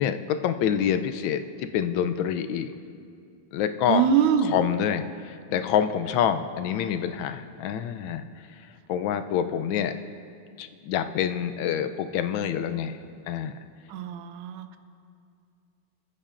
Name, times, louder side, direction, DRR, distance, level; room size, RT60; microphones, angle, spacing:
voice 1, 0.0-2.7 3.5-4.0 4.5-8.2 8.9-9.9 10.6-13.0 13.3-13.5, left 9 dB, 80° left, 9 dB, 1.3 m, -26 dB
voice 2, 3.9-4.6 13.9-14.8, right 8 dB, 85° right, 10 dB, 1.4 m, -23 dB
19.5 x 8.6 x 2.5 m, 2.5 s
omnidirectional pair, 2.1 m